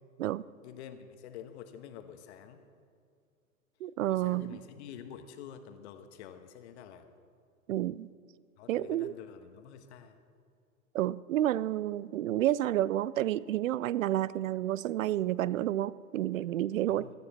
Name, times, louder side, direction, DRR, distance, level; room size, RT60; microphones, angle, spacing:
voice 1, 0.6-2.6 4.0-7.1 8.6-10.2 16.9-17.1, left 9 dB, 50° left, 8 dB, 1.4 m, -48 dB
voice 2, 3.8-4.6 7.7-8.1 8.7-9.1 10.9-17.1, right 13 dB, 65° right, 20 dB, 0.5 m, -30 dB
17.5 x 12.5 x 4.3 m, 2.3 s
hypercardioid pair, 115°, 43 cm